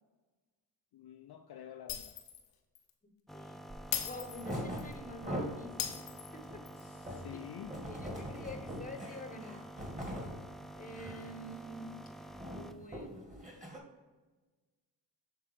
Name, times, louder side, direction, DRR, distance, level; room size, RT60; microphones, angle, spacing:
voice 1, 0.9-2.2 6.8-7.8, left 10 dB, 55° left, 5 dB, 0.6 m, -49 dB
Shatter, 1.9-2.5 2.8-2.9 3.9-4.9 5.8-6.8, left 10 dB, 80° left, 0.9 m, -39 dB
voice 2, 3.0-3.7 3.9-6.6 7.3-7.5 7.8-9.7 10.7-12.0 12.5-13.4, left 1 dB, 15° left, 6 dB, 1.1 m, -48 dB
sound 1, 3.3-12.8, right 1 dB, ahead, 0.3 m, -49 dB
sound 2, 3.7-3.9 4.3-5.7 6.1-10.4 10.8-11.3 11.5-11.8 12.1-13.8, equal, 15° right, 2.1 m, -42 dB
7.4 x 3.7 x 4.5 m, 1.3 s
supercardioid pair, 45°, 48 cm